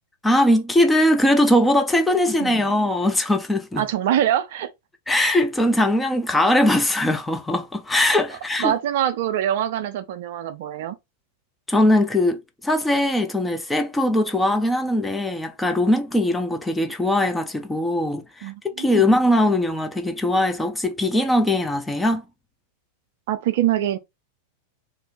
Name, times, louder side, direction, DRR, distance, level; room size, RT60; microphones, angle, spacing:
voice 1, 0.2-3.8 5.1-8.7 11.7-18.5 18.8-22.2, left 1 dB, 10° left, 0.5 m, -20 dB
voice 2, 2.4-2.7 3.8-4.7 8.6-11.0 18.4-19.1 23.3-24.0, right 11 dB, 55° right, 0.4 m, -24 dB
2.5 x 2.1 x 3.8 m
figure-of-eight pair, 95°, 0 cm